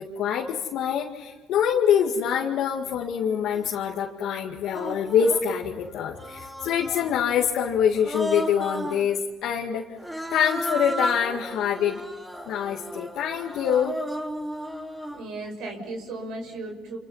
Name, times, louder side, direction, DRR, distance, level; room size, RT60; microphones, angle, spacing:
voice 1, 0.0-9.8 10.3-12.0 12.5-14.0, left 8 dB, 75° left, -1 dB, 2.2 m, -25 dB
Human voice, 3.5-3.7 4.6-5.5 6.2-7.2 8.0-9.1 10.0-15.2, equal, 10° right, 3.2 m, -34 dB
voice 2, 15.1-17.0, right 2 dB, 80° right, 3 dB, 6.3 m, -35 dB
28.0 x 27.5 x 5.8 m, 1.3 s
supercardioid pair, 80°, 0 cm